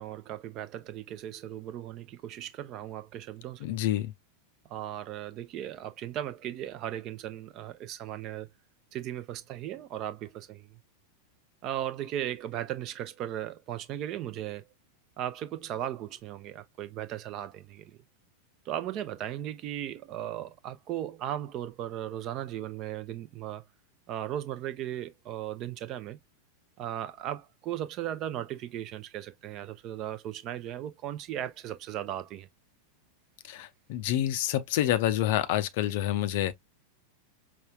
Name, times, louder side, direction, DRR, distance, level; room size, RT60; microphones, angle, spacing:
voice 1, 0.0-3.6 4.7-8.5 8.9-10.7 11.6-14.6 15.2-17.9 18.7-23.6 24.1-26.2 26.8-32.5, right 11 dB, 35° right, 0.7 m, -37 dB
voice 2, 3.6-4.1 33.5-36.5, left 13 dB, 50° left, 0.5 m, -28 dB
5.4 x 2.4 x 2.2 m
figure-of-eight pair, 90°, 0 cm